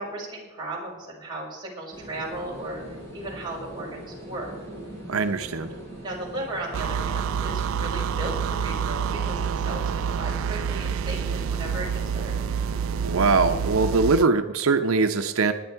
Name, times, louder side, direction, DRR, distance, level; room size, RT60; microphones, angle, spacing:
voice 1, 0.0-2.8 3.1-4.5 6.0-12.3, right 1 dB, 20° right, -4 dB, 5.1 m, -36 dB
sound 1, 1.9-14.0, right 1 dB, 15° left, 5.0 m, -41 dB
voice 2, 5.1-5.7 13.0-15.5, right 4 dB, 85° right, 8 dB, 0.7 m, -22 dB
sound 2, 6.7-14.3, right 7 dB, 70° right, 0.3 m, -28 dB
20.0 x 9.5 x 4.6 m, 1.3 s
head